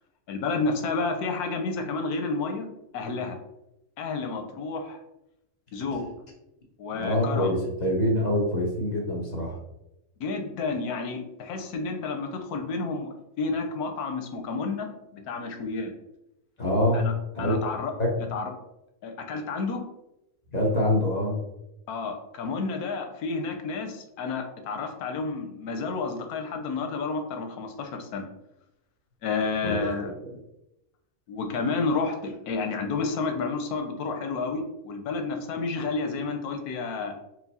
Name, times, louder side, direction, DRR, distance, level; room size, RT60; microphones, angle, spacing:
voice 1, 0.3-2.7 2.9-3.4 4.0-5.0 5.7-6.0 6.8-7.6 10.2-15.9 16.9-17.1 17.4-17.9 18.3-18.5 19.0-19.8 21.9-28.3 29.2-30.1 31.3-37.1, left 4 dB, 90° left, 4 dB, 1.2 m, -30 dB
voice 2, 7.0-9.5 16.6-17.0 17.3-17.5 18.0-18.1 20.5-21.4 29.6-30.3, left 1 dB, 35° left, -2 dB, 0.8 m, -25 dB
4.5 x 2.1 x 4.1 m, 0.88 s
omnidirectional pair, 1.5 m